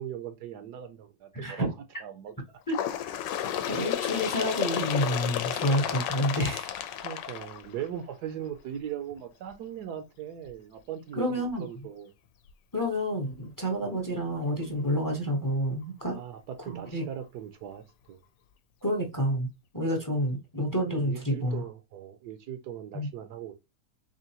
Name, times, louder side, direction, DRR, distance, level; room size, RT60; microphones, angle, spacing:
voice 1, 0.0-1.7 2.0-2.3 5.8-6.0 7.0-12.1 13.8-13.9 16.1-18.2 20.9-23.5, right 10 dB, 75° right, 1.1 m, -39 dB
voice 2, 1.3-1.7 2.7-2.8 3.7-6.7 11.2-11.7 12.7-16.2 16.7-17.0 18.8-19.5 19.7-21.6 22.9-23.1, equal, 20° left, 0.5 m, -29 dB
Bird, 2.7-8.1 9.0-9.1 9.5-9.6 10.5-10.6 11.5-11.6 12.5-12.6, left 10 dB, 90° left, 1.3 m, -32 dB
3.7 x 3.6 x 2.8 m
omnidirectional pair, 1.8 m